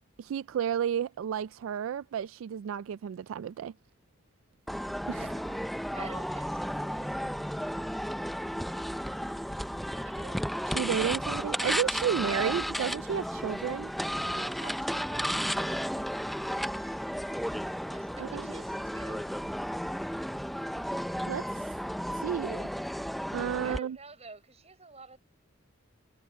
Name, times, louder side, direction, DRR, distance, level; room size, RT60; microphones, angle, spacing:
voice 1, 0.2-3.7 5.1-5.3 10.7-13.9 18.2-18.5 21.3-21.7 22.1-22.7 23.3-24.0, right 8 dB, 80° right, 0.3 m, -32 dB
sound 1, 4.7-23.8, equal, ahead, 0.5 m, -33 dB
voice 2, 5.3-8.0 8.6-9.2 9.9-10.5 14.2-17.5 17.9-19.5 23.6-25.2, right 3 dB, 35° right, 4.8 m, -51 dB
head